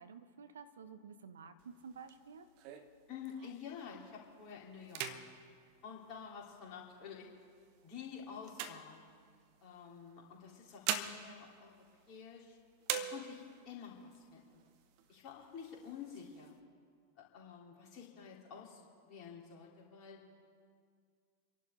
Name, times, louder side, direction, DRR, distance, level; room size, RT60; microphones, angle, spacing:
voice 1, 0.0-2.5, right 6 dB, 65° right, 10 dB, 0.9 m, -52 dB
sound 1, 1.6-3.8 4.2-4.5 4.8-6.7 7.4-9.6 10.4-12.5 12.8-13.7 14.1-14.2 14.5-15.2 15.6-16.5, right 9 dB, 45° right, 1.2 m, -43 dB
voice 2, 3.1-5.3 5.8-7.3 7.8-9.0 9.6-12.6 12.9-14.6 15.1-16.6 17.2-20.2, left 7 dB, 35° left, -3 dB, 3.5 m, -50 dB
29.0 x 11.5 x 3.8 m, 2.1 s
figure-of-eight pair, 90°, 0 cm